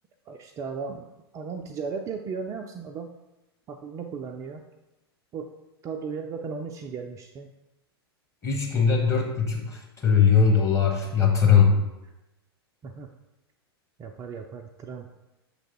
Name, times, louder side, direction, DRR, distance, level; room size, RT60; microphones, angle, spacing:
voice 1, 0.3-1.1 1.3-3.1 3.7-4.7 5.3-5.5 5.8-7.5 12.8-13.1 14.0-15.1, right 5 dB, 25° right, 3 dB, 0.4 m, -36 dB
voice 2, 8.4-11.8, left 6 dB, 20° left, -1 dB, 1.4 m, -20 dB
6.3 x 3.3 x 4.6 m, 0.96 s
figure-of-eight pair, 95°, 13 cm